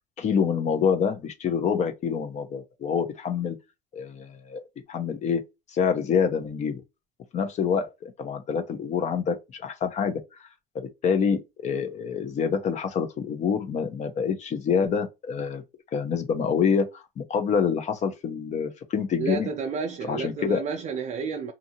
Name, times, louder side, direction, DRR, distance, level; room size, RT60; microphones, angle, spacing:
voice 1, 0.2-3.6 3.9-4.6 4.9-5.4 5.7-6.8 7.3-10.2 10.7-15.6 15.9-19.5 20.1-20.6, left 6 dB, 45° left, 0.7 m, -26 dB
voice 2, 19.2-21.5, right 5 dB, 45° right, 0.4 m, -31 dB
2.7 x 2.5 x 2.8 m
supercardioid pair, 95°, 16 cm